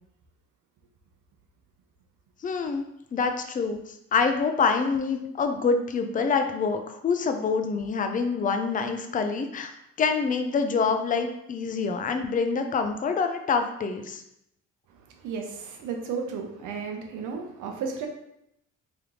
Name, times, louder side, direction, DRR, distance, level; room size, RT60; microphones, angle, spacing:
voice 1, 2.4-9.7 10.0-14.2, left 5 dB, 25° left, 6 dB, 0.5 m, -26 dB
voice 2, 15.2-18.1, right 5 dB, 80° right, 3 dB, 0.8 m, -33 dB
3.4 x 2.9 x 3.7 m, 0.79 s
cardioid pair, 90°, 30 cm